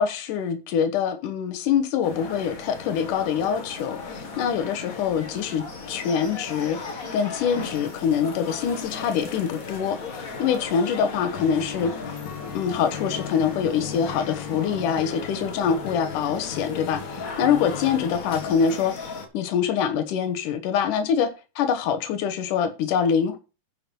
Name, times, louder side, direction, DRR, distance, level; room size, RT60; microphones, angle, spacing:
voice 1, 0.0-6.8 7.1-11.9 12.5-21.3 21.6-23.4, left 7 dB, 90° left, 2.7 m, -25 dB
sound 1, 2.0-19.3, left 4 dB, 35° left, 1.5 m, -37 dB
Acoustic guitar, 11.3-18.5, left 7 dB, 60° left, 1.1 m, -37 dB
10.5 x 5.9 x 5.3 m
omnidirectional pair, 3.5 m